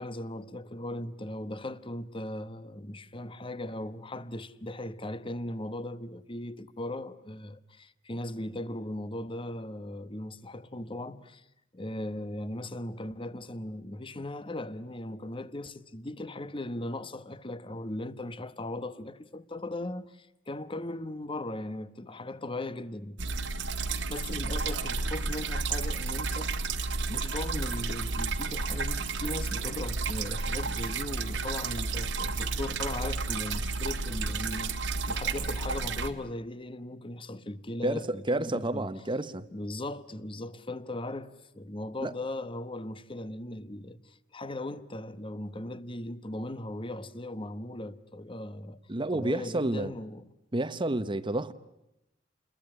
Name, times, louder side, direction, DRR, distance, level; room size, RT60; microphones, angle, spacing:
voice 1, 0.0-11.4 11.7-23.2 24.1-26.8 27.1-38.9 39.5-48.8 49.1-50.2, left 1 dB, 30° left, 1.1 m, -38 dB
sound 1, 23.2-36.1, right 3 dB, 80° right, 1.8 m, -32 dB
voice 2, 37.8-39.5 42.0-42.1 48.9-49.9 50.5-51.5, right 1 dB, 25° right, 0.9 m, -30 dB
29.0 x 21.5 x 8.8 m
head